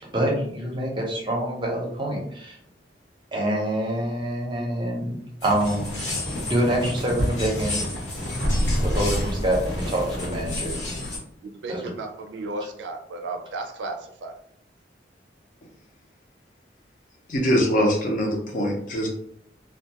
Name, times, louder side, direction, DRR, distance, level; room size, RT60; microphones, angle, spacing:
voice 1, 0.1-2.6 3.3-5.9 6.5-7.8 8.8-10.7 11.7-11.8, right 1 dB, 25° right, -2 dB, 0.6 m, -26 dB
sound 1, 5.4-11.2, left 1 dB, 80° left, 1.1 m, -28 dB
voice 2, 11.4-14.3, right 2 dB, 85° right, 5 dB, 0.4 m, -34 dB
voice 3, 17.3-19.1, equal, 45° left, 0 dB, 0.6 m, -23 dB
2.3 x 2.2 x 2.8 m, 0.68 s
head